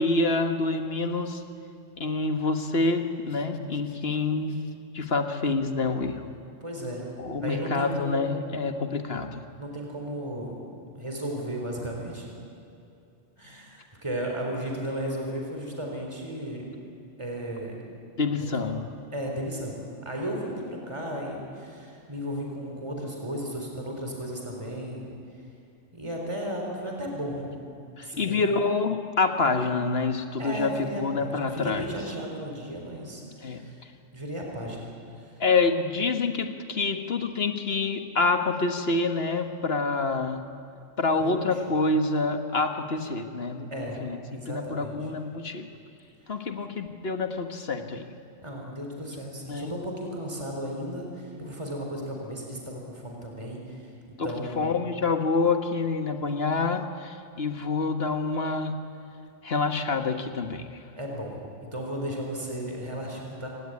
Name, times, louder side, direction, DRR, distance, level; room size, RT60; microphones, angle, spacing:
voice 1, 0.0-1.4 2.0-4.6 4.9-6.3 7.2-9.4 18.2-18.8 28.0-30.7 31.0-31.8 33.4-33.6 35.4-40.4 41.0-45.7 46.3-48.0 49.5-49.7 54.2-54.3 54.5-58.7 59.4-60.7, left 3 dB, 55° left, 6 dB, 1.7 m, -27 dB
voice 2, 6.6-7.1 7.4-8.6 9.6-12.3 13.4-16.6 17.2-17.8 18.6-18.7 19.1-25.2 25.9-28.4 30.4-33.8 34.1-35.2 41.2-41.4 43.7-44.0 44.3-45.0 46.3-46.4 48.4-54.7 61.0-63.5, equal, 25° right, 0 dB, 4.2 m, -35 dB
28.5 x 17.0 x 9.8 m, 2.6 s
omnidirectional pair, 1.3 m